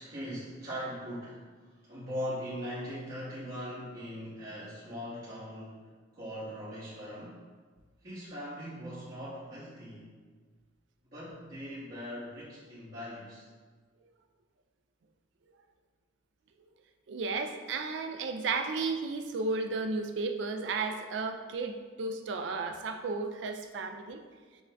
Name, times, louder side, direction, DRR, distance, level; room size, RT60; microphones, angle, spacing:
voice 1, 0.0-1.4 1.8-5.8 6.1-7.4 8.0-10.1 11.1-13.5, equal, 55° right, -13 dB, 1.3 m, -40 dB
voice 2, 17.1-24.2, right 4 dB, 75° right, 6 dB, 0.4 m, -33 dB
6.9 x 2.6 x 2.2 m, 1.5 s
head